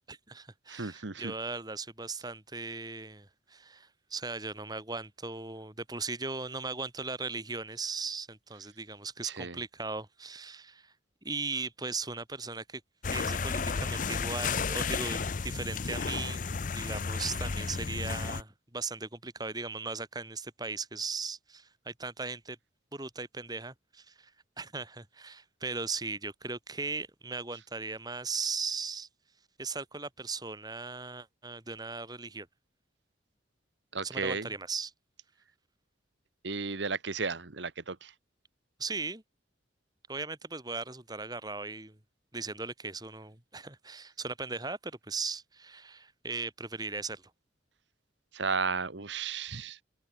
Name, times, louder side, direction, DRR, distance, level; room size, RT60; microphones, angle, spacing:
voice 1, 0.1-10.9 11.2-12.8 13.1-22.6 22.9-24.3 24.6-29.1 29.6-32.5 34.0-34.9 38.8-39.2 40.1-42.0 42.3-47.2, right 4 dB, 20° right, 3.3 m, -38 dB
voice 2, 0.7-1.3 9.2-9.6 33.9-34.5 36.4-38.1 48.3-49.8, right 4 dB, 70° right, 1.4 m, -34 dB
sound 1, 13.0-18.4, left 5 dB, 45° left, 0.6 m, -33 dB
head